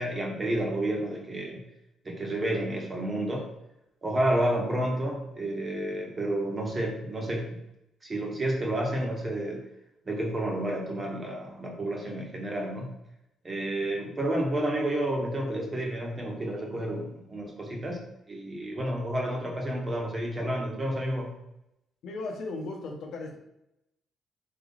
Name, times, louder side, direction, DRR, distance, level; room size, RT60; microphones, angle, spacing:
voice 1, 0.0-1.6 2.0-3.5 4.0-7.6 8.0-9.6 10.0-12.9 13.4-18.0 18.3-21.3, right 1 dB, 30° right, 0 dB, 1.3 m, -30 dB
voice 2, 22.0-23.4, left 3 dB, 80° left, 1 dB, 0.9 m, -36 dB
3.8 x 3.2 x 3.9 m, 0.85 s
cardioid pair, 90°, 0 cm